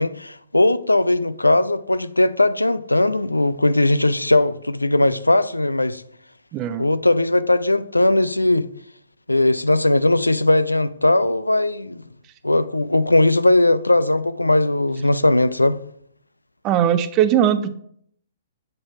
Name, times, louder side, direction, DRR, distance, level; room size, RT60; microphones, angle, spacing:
voice 1, 0.0-6.0 6.8-8.7 9.3-12.0 12.4-15.8, left 2 dB, 80° left, 0.4 m, -18 dB
voice 2, 6.5-6.9 16.6-17.7, right 10 dB, 25° right, 0.5 m, -19 dB
7.6 x 4.3 x 4.6 m
figure-of-eight pair, 120°, 0 cm